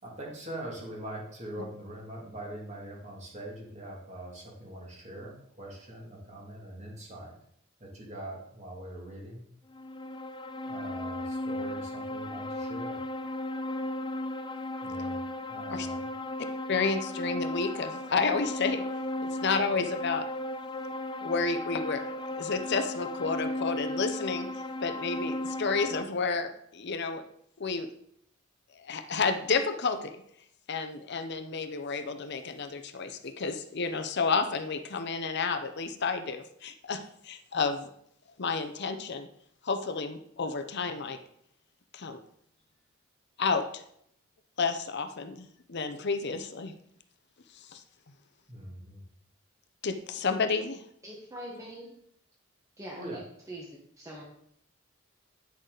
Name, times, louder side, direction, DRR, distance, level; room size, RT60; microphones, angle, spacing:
voice 1, 0.0-7.3 7.8-9.4 10.6-13.0 14.8-15.2 15.5-16.1 48.5-49.0 53.0-53.2, right 1 dB, 35° right, -2 dB, 2.5 m, -42 dB
sound 1, 9.7-26.0, left 1 dB, 20° left, 0.4 m, -35 dB
voice 2, 16.7-18.8 19.4-20.3 21.2-24.5 24.8-27.2 27.6-27.9 28.8-30.2 30.7-37.9 38.4-39.3 39.6-41.2 41.9-42.2 43.4-43.8 44.6-46.7 47.7-47.8 49.8-50.8, left 4 dB, 55° left, 7 dB, 0.7 m, -31 dB
voice 3, 51.0-52.0 52.8-53.2 53.5-53.7 54.0-54.2, right 1 dB, 15° right, -3 dB, 1.2 m, -42 dB
9.6 x 6.5 x 3.9 m, 0.69 s
head